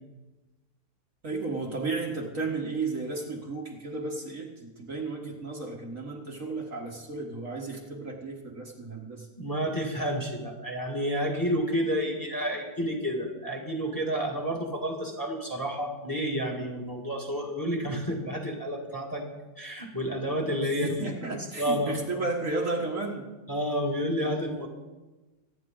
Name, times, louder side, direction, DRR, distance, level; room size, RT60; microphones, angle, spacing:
voice 1, 1.2-9.3 20.6-23.3, right 3 dB, 50° right, 0 dB, 1.9 m, -33 dB
voice 2, 9.4-19.2 19.6-21.1 21.6-22.0 23.5-24.7, equal, 10° left, 1 dB, 2.2 m, -30 dB
25.5 x 9.7 x 3.9 m, 1.1 s
omnidirectional pair, 1.8 m